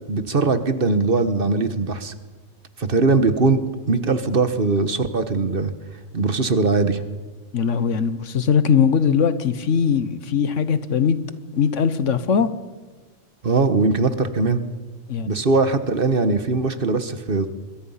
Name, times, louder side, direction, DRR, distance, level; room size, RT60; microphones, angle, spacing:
voice 1, 0.1-2.1 2.8-3.6 3.9-5.7 6.1-7.0 13.4-14.6 15.3-17.5, right 3 dB, 45° right, 1.4 m, -20 dB
voice 2, 7.5-11.2 11.5-12.5 15.1-15.3, left 7 dB, 80° left, 1.4 m, -20 dB
26.0 x 22.0 x 5.7 m
omnidirectional pair, 1.3 m